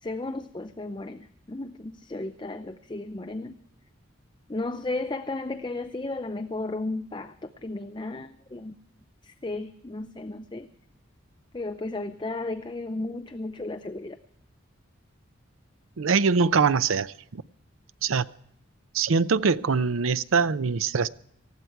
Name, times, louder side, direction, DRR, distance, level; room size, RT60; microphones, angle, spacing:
voice 1, 0.0-3.6 4.5-8.7 9.2-10.7 11.5-14.2, left 2 dB, 20° left, 0.5 m, -34 dB
voice 2, 16.0-17.4 18.0-18.3 18.9-21.1, right 5 dB, 75° right, 0.6 m, -23 dB
19.5 x 14.0 x 4.6 m
head